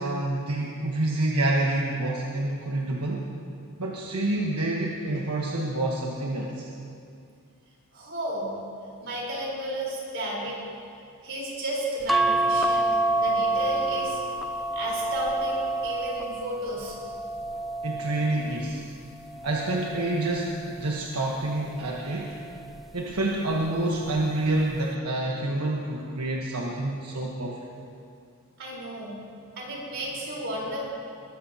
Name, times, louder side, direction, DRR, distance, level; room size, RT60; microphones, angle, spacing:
voice 1, 0.0-3.3 3.8-6.7 17.8-18.8 19.4-22.5 22.9-27.6, right 2 dB, 85° right, -2 dB, 1.3 m, -28 dB
voice 2, 7.9-8.5 9.0-10.6 11.2-12.9 13.2-14.2 14.4-16.9 28.6-29.2 29.6-30.8, right 1 dB, 55° right, -4 dB, 4.2 m, -33 dB
sound 1, 12.1-18.7 19.3-20.7 22.0-22.4 22.7-22.8, right 2 dB, ahead, 0.4 m, -28 dB
20.5 x 14.0 x 2.9 m, 2.4 s
head